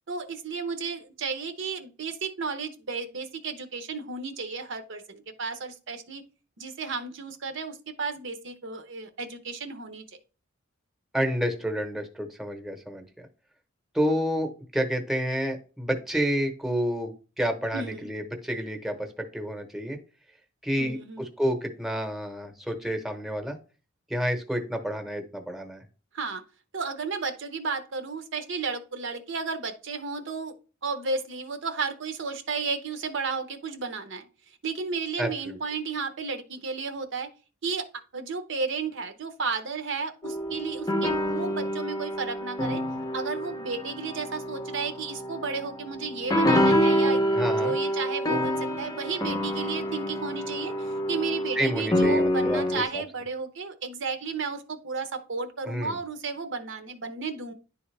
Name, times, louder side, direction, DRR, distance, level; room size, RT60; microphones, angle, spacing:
voice 1, 0.1-6.2 6.6-10.0 17.7-18.1 20.8-21.3 26.1-26.4 26.7-30.5 30.8-34.3 34.6-37.3 37.6-37.9 38.1-42.8 43.1-47.3 47.6-57.5, right 4 dB, 65° right, 9 dB, 0.8 m, -33 dB
voice 2, 11.1-13.1 13.9-20.0 20.6-23.6 24.1-25.8 35.2-35.6 47.3-47.7 51.5-53.0 55.6-56.0, equal, ahead, 5 dB, 0.9 m, -29 dB
sound 1, 40.2-52.8, equal, 20° left, 0.7 m, -27 dB
10.5 x 3.5 x 3.3 m, 0.35 s
head